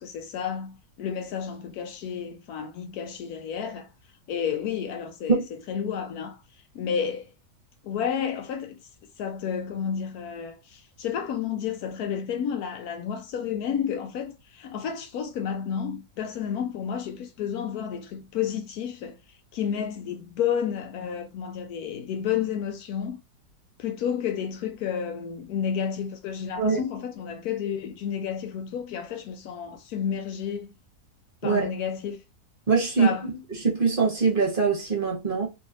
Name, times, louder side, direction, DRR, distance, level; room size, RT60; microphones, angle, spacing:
voice 1, 0.0-3.9 4.3-6.4 6.7-7.3 7.8-8.8 9.2-19.2 19.5-23.2 23.8-30.7 31.4-32.2 33.0-33.3, left 8 dB, 75° left, 1.0 m, -31 dB
voice 2, 32.7-35.5, right 5 dB, 35° right, 1.3 m, -23 dB
3.2 x 3.1 x 2.5 m
omnidirectional pair, 1.7 m